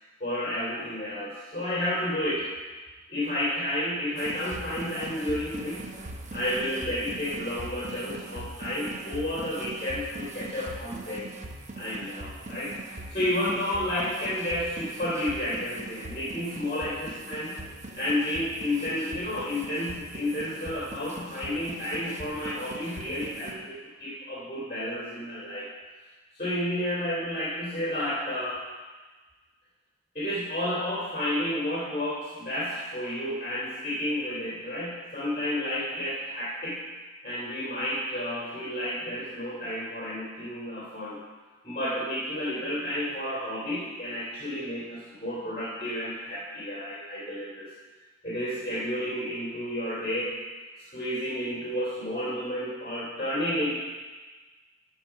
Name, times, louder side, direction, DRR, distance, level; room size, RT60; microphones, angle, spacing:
voice 1, 0.2-2.5 3.1-5.8 6.3-11.3 11.8-17.5 17.9-25.7 26.3-28.6 30.1-36.8 37.2-41.2 41.6-47.7 48.2-50.4 50.9-53.8, left 1 dB, 30° left, -9 dB, 2.9 m, -31 dB
sound 1, 4.2-23.5, right 2 dB, 40° right, 0.9 m, -41 dB
14.5 x 4.9 x 5.8 m, 1.3 s
head